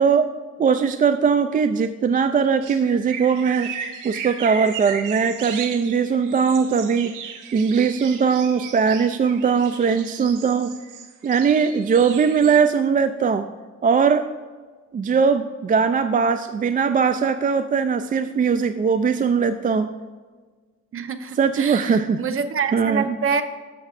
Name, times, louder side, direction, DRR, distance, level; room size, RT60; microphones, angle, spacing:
voice 1, 0.0-3.7 4.0-7.1 7.5-10.7 11.2-13.5 13.8-14.3 14.9-19.9 21.3-22.2 22.7-23.1, right 6 dB, 30° right, 10 dB, 0.3 m, -20 dB
sound 1, 2.6-12.6, right 7 dB, 85° right, 0.9 m, -36 dB
voice 2, 20.9-23.4, right 6 dB, 45° right, 10 dB, 0.8 m, -26 dB
12.5 x 7.1 x 2.5 m, 1.5 s
cardioid pair, 90°, 30 cm